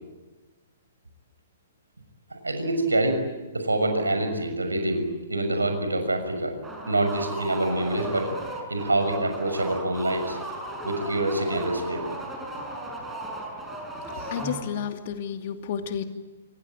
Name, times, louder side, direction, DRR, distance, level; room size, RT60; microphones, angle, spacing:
voice 1, 2.3-3.3 3.5-6.6 6.9-8.3 8.7-10.4 10.8-12.0, right 1 dB, 80° right, 6 dB, 6.5 m, -26 dB
sound 1, 6.6-14.9, right 1 dB, 10° right, 5.9 m, -36 dB
voice 2, 14.1-16.0, left 8 dB, 45° left, 7 dB, 2.7 m, -32 dB
27.0 x 24.0 x 9.1 m, 1.2 s
figure-of-eight pair, 115°, 0 cm